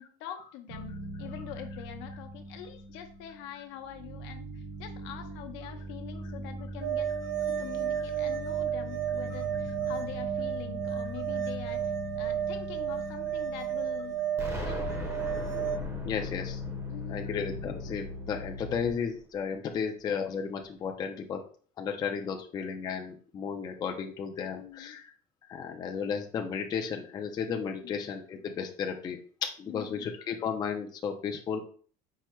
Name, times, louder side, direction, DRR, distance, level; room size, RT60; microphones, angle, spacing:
voice 1, 0.0-7.1 7.5-14.2 14.6-14.9 16.9-17.3 24.6-25.0 27.8-28.0 29.7-30.1, left 11 dB, 75° left, 6 dB, 0.7 m, -44 dB
sound 1, 0.7-3.5 3.8-18.9, equal, 65° right, 1.3 m, -40 dB
sound 2, 6.8-15.8, right 9 dB, 80° right, 0.5 m, -32 dB
Explosion, 14.4-19.2, equal, 15° right, 0.6 m, -40 dB
voice 2, 16.0-16.6 17.1-21.4 21.8-25.1 25.5-31.6, left 6 dB, 20° left, 3 dB, 0.3 m, -34 dB
4.6 x 2.0 x 4.3 m, 0.44 s
cardioid pair, 170°, 20 cm